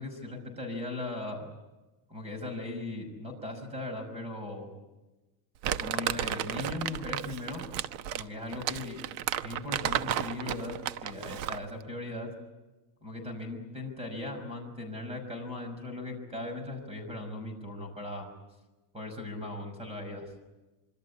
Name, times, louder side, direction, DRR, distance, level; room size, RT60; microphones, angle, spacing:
voice 1, 0.0-1.5 2.1-4.7 5.8-7.6 8.1-9.0 9.4-12.3 13.0-18.3 18.9-20.3, left 2 dB, 10° right, 7 dB, 5.8 m, -38 dB
Crumpling crinkling, 5.6-11.7, right 11 dB, 80° right, 1.2 m, -33 dB
26.5 x 24.5 x 8.4 m, 1.1 s
cardioid pair, 170°, 49 cm